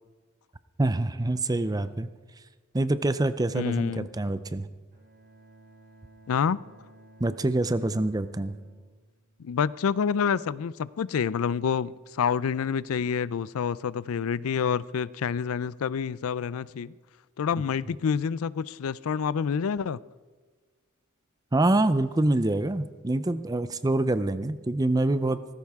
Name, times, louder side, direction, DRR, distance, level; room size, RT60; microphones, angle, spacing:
voice 1, 0.8-2.1 2.7-4.7 7.2-8.6 21.5-25.4, right 2 dB, 20° right, 0.5 m, -25 dB
voice 2, 3.5-4.1 6.3-6.6 9.4-16.9 17.4-20.0, left 6 dB, 90° left, 0.4 m, -28 dB
Bowed string instrument, 4.9-9.9, right 1 dB, 40° right, 2.0 m, -55 dB
17.5 x 15.0 x 3.6 m
head